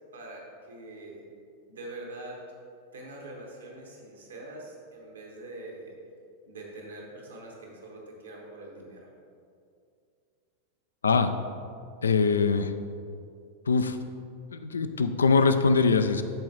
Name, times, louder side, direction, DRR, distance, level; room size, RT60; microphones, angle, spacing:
voice 1, 0.1-1.2 1.7-2.4 2.9-5.9 6.5-9.1, right 2 dB, 65° right, -1 dB, 1.4 m, -44 dB
voice 2, 12.0-12.7 13.7-14.0 14.5-16.2, left 4 dB, 70° left, 9 dB, 0.4 m, -22 dB
13.0 x 4.6 x 3.0 m, 2.4 s
figure-of-eight pair, 90°, 0 cm